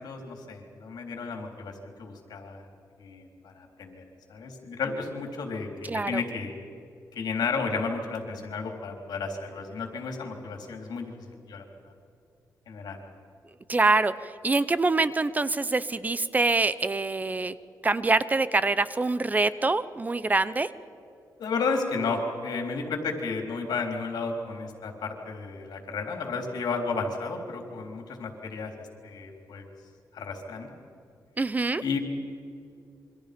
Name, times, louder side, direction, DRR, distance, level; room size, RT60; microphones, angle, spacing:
voice 1, 0.0-2.6 3.0-4.0 4.3-6.5 7.1-11.6 12.7-13.0 21.4-28.7 29.0-29.7 30.1-30.7 31.8-32.0, left 4 dB, 80° left, 3 dB, 3.7 m, -33 dB
voice 2, 5.9-6.2 13.7-17.6 17.8-20.7 31.4-31.8, right 3 dB, 25° right, 15 dB, 0.7 m, -25 dB
28.0 x 24.5 x 5.2 m, 2.6 s
wide cardioid pair, 120°, 7 cm